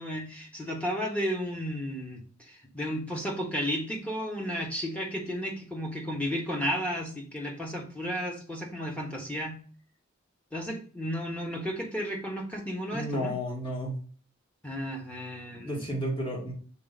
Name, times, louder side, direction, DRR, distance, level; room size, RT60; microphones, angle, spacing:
voice 1, 0.0-2.2 2.5-9.6 10.5-13.3 14.6-15.8, equal, 5° left, -1 dB, 1.3 m, -33 dB
voice 2, 12.9-14.0 15.5-16.5, equal, 25° left, -2 dB, 2.1 m, -32 dB
5.8 x 4.5 x 4.0 m, 0.41 s
head